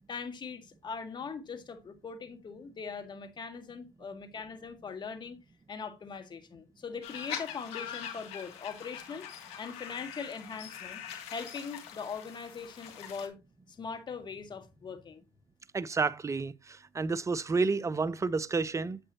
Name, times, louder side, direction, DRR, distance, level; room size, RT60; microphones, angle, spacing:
voice 1, 0.1-5.4 5.7-9.3 9.6-11.0 11.3-13.4 13.7-15.2, left 5 dB, 45° left, 1.8 m, -41 dB
sound 1, 7.0-13.3, left 9 dB, 75° left, 1.8 m, -43 dB
voice 2, 15.7-19.0, right 4 dB, 30° right, 0.7 m, -30 dB
8.9 x 7.8 x 2.9 m
hypercardioid pair, 55°, 10 cm